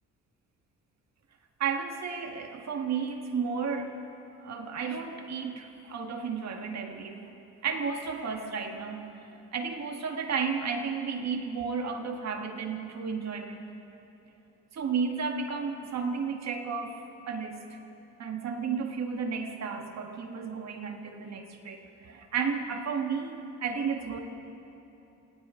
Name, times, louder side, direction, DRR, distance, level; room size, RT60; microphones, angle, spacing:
voice 1, 1.6-4.0 4.4-7.3 7.6-13.6 14.7-17.8 18.2-24.2, right 5 dB, 60° right, 4 dB, 1.9 m, -33 dB
27.5 x 27.0 x 3.9 m, 2.9 s
cardioid pair, 90°, 30 cm